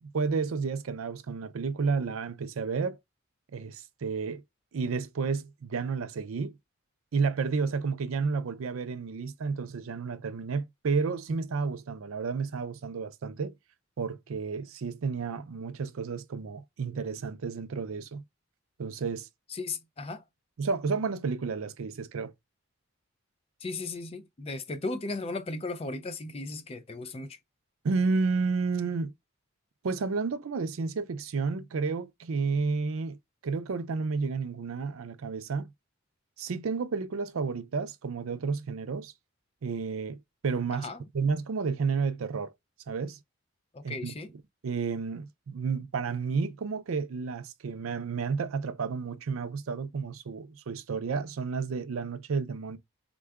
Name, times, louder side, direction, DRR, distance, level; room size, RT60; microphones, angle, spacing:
voice 1, 0.0-3.0 3.5-4.4 4.7-6.6 7.1-13.5 14.0-18.2 18.8-19.3 20.6-22.3 27.8-29.1 29.8-33.2 33.4-35.7 36.4-39.1 39.6-40.2 40.4-40.9 41.1-42.5 42.9-43.2 43.8-44.1 44.6-52.8, right 4 dB, 75° right, 0.5 m, -31 dB
voice 2, 19.5-20.2 23.6-27.4 40.7-41.0 43.7-44.3, left 3 dB, 30° left, 0.4 m, -36 dB
3.7 x 2.3 x 3.4 m
head